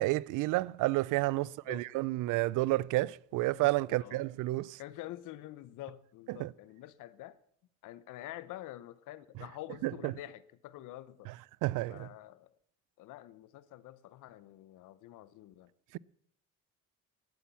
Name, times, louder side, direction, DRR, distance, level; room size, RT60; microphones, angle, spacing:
voice 1, 0.0-4.8 6.4-6.5 9.8-10.1 11.3-11.4 11.6-12.1 15.9-16.0, right 19 dB, 75° right, 0.4 m, -30 dB
voice 2, 1.3-1.9 3.4-4.3 4.8-7.4 7.8-11.3 11.9-12.6 13.0-15.7, left 14 dB, 75° left, 0.9 m, -47 dB
11.5 x 10.5 x 7.0 m
cardioid pair, 130°, 31 cm